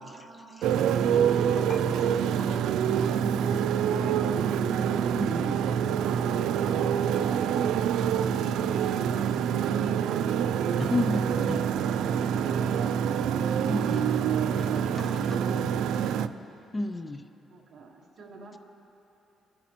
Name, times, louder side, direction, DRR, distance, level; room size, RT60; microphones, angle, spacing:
voice 1, 0.0-5.4 16.0-16.5 17.5-18.6, right 3 dB, 40° right, -1 dB, 1.5 m, -49 dB
voice 2, 0.6-1.1 1.6-2.6 3.1-3.6 5.2-5.7 10.8-11.7 12.1-12.5 13.6-14.2 14.5-15.7 16.7-17.3, left 2 dB, 15° left, 9 dB, 0.4 m, -35 dB
Motorcycle, 0.6-16.3, right 8 dB, 85° right, 0.3 m, -26 dB
23.5 x 10.0 x 3.0 m, 3.0 s
cardioid pair, 170°, 0 cm